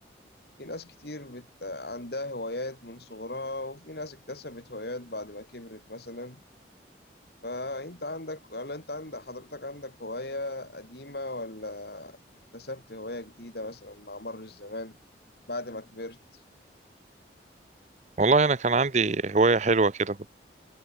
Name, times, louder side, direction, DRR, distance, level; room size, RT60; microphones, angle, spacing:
voice 1, 0.6-6.4 7.4-12.2 12.5-15.0 15.5-16.2, left 2 dB, 60° left, 3.4 m, -37 dB
voice 2, 18.2-20.3, right 3 dB, 40° right, 0.7 m, -22 dB
head